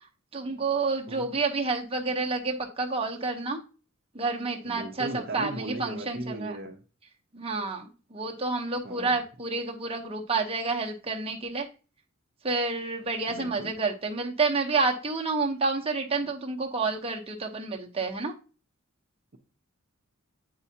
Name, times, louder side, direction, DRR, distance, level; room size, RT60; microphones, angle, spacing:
voice 1, 0.3-3.6 4.1-6.6 7.3-11.7 12.4-18.3, right 3 dB, 30° right, 1 dB, 0.9 m, -29 dB
voice 2, 4.6-6.8 8.8-9.2 13.3-13.8, right 2 dB, 50° right, 4 dB, 0.8 m, -37 dB
8.3 x 4.8 x 2.8 m, 0.35 s
head